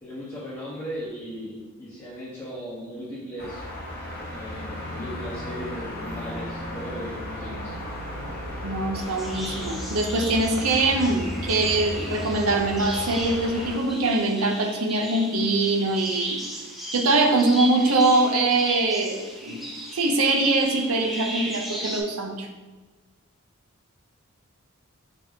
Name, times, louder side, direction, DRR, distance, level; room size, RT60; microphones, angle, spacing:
voice 1, 0.0-3.7 4.3-7.8, equal, 20° left, -9 dB, 1.0 m, -37 dB
sound 1, 3.4-13.8, left 1 dB, 50° left, 1.2 m, -35 dB
voice 2, 8.6-16.4 16.9-19.7 19.9-22.5, right 2 dB, 85° right, 2 dB, 0.7 m, -23 dB
sound 2, 8.9-22.0, right 1 dB, ahead, 0.8 m, -36 dB
5.1 x 2.8 x 3.5 m, 1.3 s
head